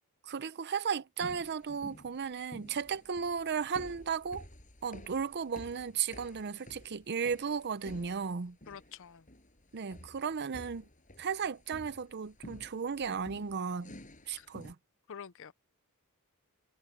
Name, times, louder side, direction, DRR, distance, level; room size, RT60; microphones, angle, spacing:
voice 1, 0.2-4.5 4.8-8.6 9.7-10.8 11.2-13.9 14.3-14.8, right 6 dB, 50° right, 0.6 m, -35 dB
sound 1, 1.2-14.7, left 1 dB, 35° left, 6.9 m, -52 dB
voice 2, 8.7-9.2 14.4-14.5 15.1-15.5, left 7 dB, 65° left, 0.6 m, -47 dB
head